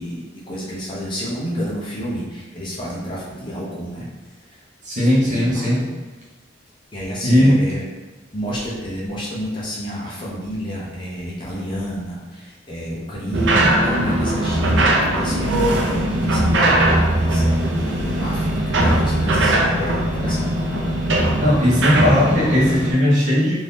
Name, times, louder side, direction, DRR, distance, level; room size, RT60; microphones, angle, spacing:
voice 1, 0.0-4.1 5.0-5.9 6.9-7.8 8.3-20.6, equal, 25° left, -6 dB, 0.7 m, -30 dB
voice 2, 4.8-5.9 7.2-7.6 21.4-23.6, left 1 dB, 40° right, -6 dB, 0.9 m, -17 dB
sound 1, 13.3-22.9, right 1 dB, 70° right, 0.5 m, -19 dB
2.7 x 2.6 x 3.4 m, 1.2 s
head